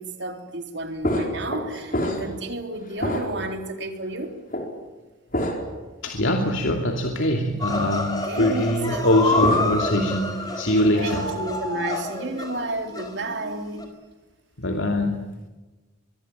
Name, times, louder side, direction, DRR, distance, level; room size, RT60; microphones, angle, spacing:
voice 1, 0.0-4.3 8.2-9.2 11.0-13.8, right 2 dB, 60° right, 5 dB, 3.6 m, -31 dB
sound 1, 1.0-2.5 2.9-3.6 4.5-4.7 5.3-5.8 6.3-6.4 9.0-10.0 10.3-10.7, equal, 40° left, 4.6 m, -27 dB
voice 2, 6.0-11.3 14.6-15.2, left 1 dB, 75° left, 3 dB, 2.7 m, -23 dB
sound 2, 7.6-13.9, left 2 dB, 20° left, 4.2 m, -28 dB
24.0 x 23.5 x 9.0 m, 1.2 s
head